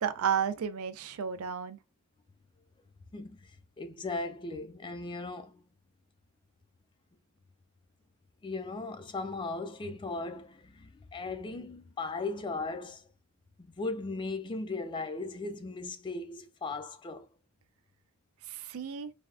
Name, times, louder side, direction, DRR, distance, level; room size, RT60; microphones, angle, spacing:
voice 1, 0.0-1.8 18.5-19.1, right 7 dB, 80° right, 0.4 m, -32 dB
voice 2, 3.1-3.5 3.8-5.6 8.4-13.1 13.6-17.3, left 3 dB, 20° left, 0.3 m, -37 dB
3.3 x 2.2 x 2.4 m
head